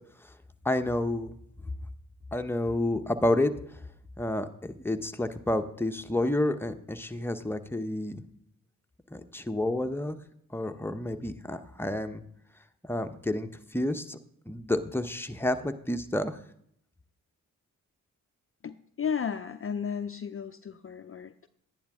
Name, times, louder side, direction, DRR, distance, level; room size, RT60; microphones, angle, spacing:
voice 1, 0.6-1.3 2.3-3.8 4.2-8.2 9.1-10.2 10.5-12.2 12.9-14.2 14.5-16.4, left 1 dB, 5° left, 7 dB, 0.9 m, -30 dB
voice 2, 18.6-21.5, left 7 dB, 40° left, 10 dB, 0.5 m, -34 dB
12.0 x 10.0 x 3.6 m, 0.70 s
supercardioid pair, 40°, 35 cm